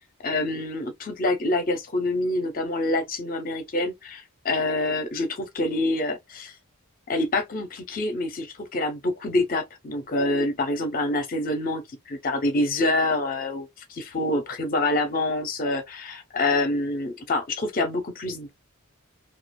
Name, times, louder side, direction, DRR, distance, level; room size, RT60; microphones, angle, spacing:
voice 1, 0.2-6.5 7.1-18.5, left 2 dB, 40° left, 0.6 m, -26 dB
2.4 x 2.3 x 2.2 m
head